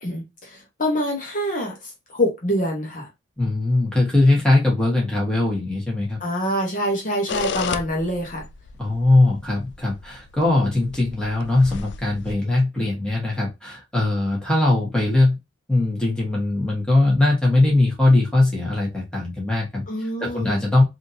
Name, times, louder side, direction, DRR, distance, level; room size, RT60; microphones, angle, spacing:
voice 1, 0.0-3.1 6.2-8.4 19.9-20.6, equal, 45° left, 1.0 m, -25 dB
voice 2, 3.4-6.2 8.8-15.4 15.7-19.8 20.2-20.8, left 2 dB, 5° left, 1.3 m, -20 dB
sound 1, 7.3-12.4, left 5 dB, 65° left, 0.3 m, -33 dB
3.5 x 2.7 x 2.6 m
head